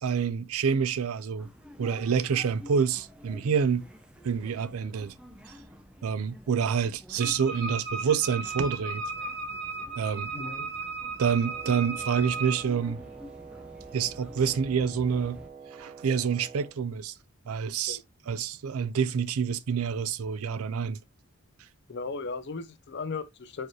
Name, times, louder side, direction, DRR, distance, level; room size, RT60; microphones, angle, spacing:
voice 1, 0.0-1.5 1.8-3.9 4.2-5.1 6.0-9.0 10.0-10.3 11.2-13.0 13.9-15.4 15.7-17.1 17.5-18.0 18.3-21.0, right 6 dB, 80° right, 0.4 m, -27 dB
sound 1, 1.4-15.5, equal, 5° right, 0.5 m, -49 dB
Wind instrument woodwind instrument, 7.2-12.7, right 4 dB, 55° right, 1.4 m, -35 dB
voice 2, 10.3-10.7 17.9-18.0 21.9-23.7, left 4 dB, 55° left, 0.5 m, -36 dB
Wind instrument woodwind instrument 2, 11.4-16.8, right 6 dB, 35° right, 1.2 m, -47 dB
4.7 x 3.0 x 3.0 m
head